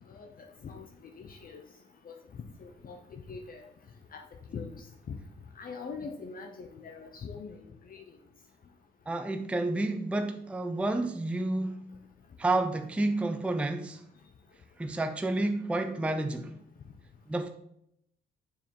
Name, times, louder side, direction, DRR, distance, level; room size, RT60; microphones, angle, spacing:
voice 1, 1.2-1.6 2.0-3.6 4.1-4.2 4.5-5.2 5.6-7.6 7.9-8.0, left 5 dB, 45° left, 4 dB, 0.7 m, -42 dB
voice 2, 9.1-11.9 12.4-14.0 14.8-16.6 17.3-17.5, right 2 dB, 5° right, 7 dB, 0.5 m, -30 dB
7.0 x 4.5 x 3.7 m, 0.76 s
cardioid pair, 90°, 20 cm